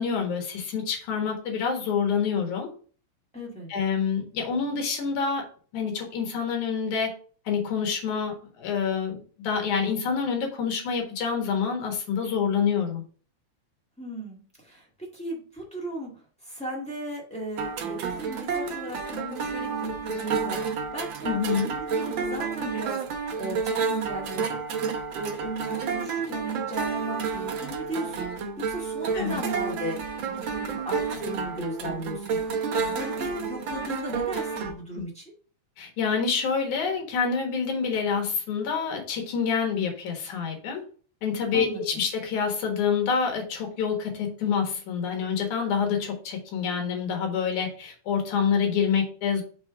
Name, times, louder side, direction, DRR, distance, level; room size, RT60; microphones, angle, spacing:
voice 1, 0.0-2.7 3.7-5.4 5.7-7.1 7.5-13.0 21.2-21.7 29.1-29.4 35.8-40.8 41.2-49.4, left 6 dB, 75° left, 2 dB, 2.9 m, -27 dB
voice 2, 3.3-3.7 14.0-16.1 16.4-23.0 23.4-24.9 25.1-35.3 41.5-42.0, right 1 dB, 5° left, -3 dB, 1.0 m, -36 dB
sound 1, 17.6-34.7, right 5 dB, 85° right, 1.1 m, -30 dB
6.3 x 3.6 x 4.7 m, 0.42 s
omnidirectional pair, 3.5 m